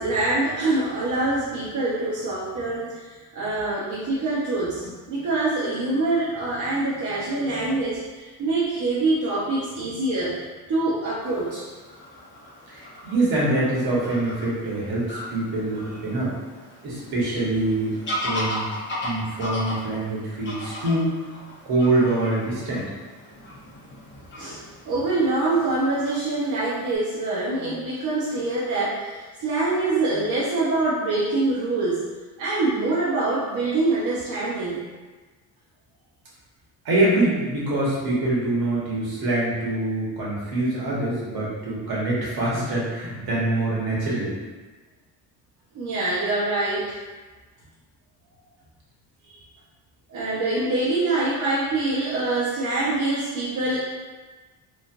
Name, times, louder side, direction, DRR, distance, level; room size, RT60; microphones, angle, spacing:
voice 1, 0.0-11.6 20.6-20.8 24.4-24.6 24.9-32.0 32.4-34.8 45.7-47.0 49.3-49.4 50.1-53.8, right 2 dB, 50° right, -8 dB, 0.7 m, -25 dB
Fowl / Bird vocalization bird call bird song, 11.2-27.0, left 1 dB, 30° left, 0.8 m, -37 dB
voice 2, 12.7-16.4 16.8-18.7 19.0-21.1 21.6-22.9 36.8-44.4, right 2 dB, 65° right, -6 dB, 1.3 m, -24 dB
3.1 x 2.4 x 2.5 m, 1.3 s
cardioid pair, 90°, 40 cm